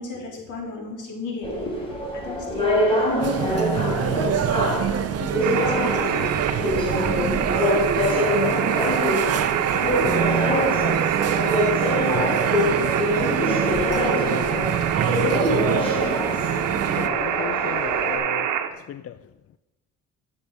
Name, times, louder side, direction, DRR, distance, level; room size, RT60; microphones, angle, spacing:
voice 1, 0.0-4.8 5.2-6.7 7.0-7.5 10.1-10.8 11.2-12.9 13.4-14.7, left 4 dB, 80° left, -1 dB, 3.5 m, -36 dB
sound 1, 1.4-18.2, left 1 dB, 20° left, 4.5 m, -25 dB
sound 2, 3.2-17.1, right 9 dB, 55° right, 0.7 m, -26 dB
sound 3, 5.4-18.7, right 9 dB, 75° right, 1.1 m, -26 dB
voice 2, 17.0-18.5 18.9-19.1, left 10 dB, 50° left, 12 dB, 0.5 m, -35 dB
11.0 x 6.6 x 6.6 m, 1.0 s
cardioid pair, 90°, 30 cm